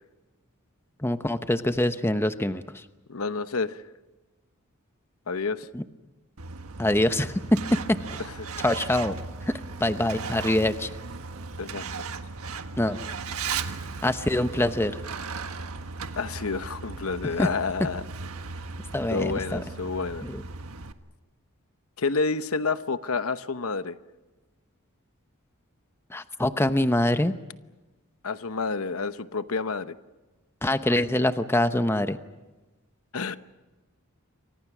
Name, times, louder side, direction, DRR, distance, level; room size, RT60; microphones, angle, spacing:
voice 1, 1.0-2.6 5.7-5.8 6.8-8.0 8.6-9.1 9.8-10.9 12.8-13.0 14.0-14.9 17.4-17.5 18.9-19.6 20.2-20.4 26.1-27.3 30.6-32.2, left 1 dB, 10° left, 10 dB, 0.9 m, -24 dB
voice 2, 3.1-3.8 5.3-5.7 8.2-8.5 11.6-12.0 16.2-18.0 19.1-20.2 22.0-24.0 28.2-29.9 33.1-33.4, left 4 dB, 80° left, 12 dB, 1.0 m, -29 dB
Truck, 6.4-20.9, right 4 dB, 85° right, 1.4 m, -37 dB
28.5 x 25.0 x 6.2 m, 1.2 s
head